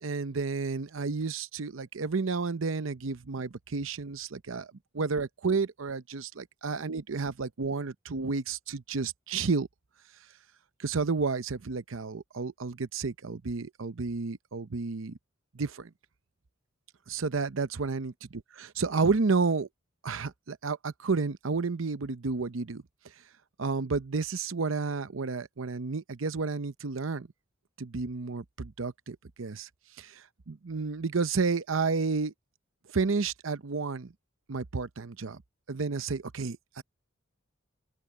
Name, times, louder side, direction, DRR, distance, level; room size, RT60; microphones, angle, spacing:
voice 1, 0.0-4.7 4.9-9.7 10.8-15.2 15.5-15.9 17.1-19.7 20.0-22.8 23.6-27.3 27.8-29.7 30.0-32.3 32.9-34.1 34.5-35.4 35.7-36.8, right 4 dB, 85° right, 0.8 m, -31 dB
open air
head